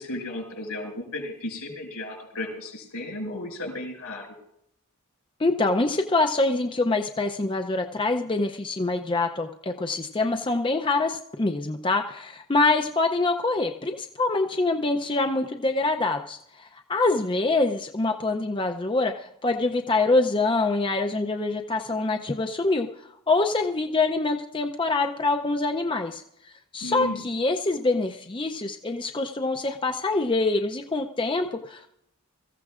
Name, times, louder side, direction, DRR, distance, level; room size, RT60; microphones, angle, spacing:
voice 1, 0.0-4.3 26.8-27.2, left 1 dB, 85° left, 2 dB, 5.5 m, -34 dB
voice 2, 5.4-22.9 23.3-31.9, left 3 dB, 20° left, 5 dB, 0.5 m, -25 dB
23.5 x 15.0 x 2.4 m, 0.76 s
head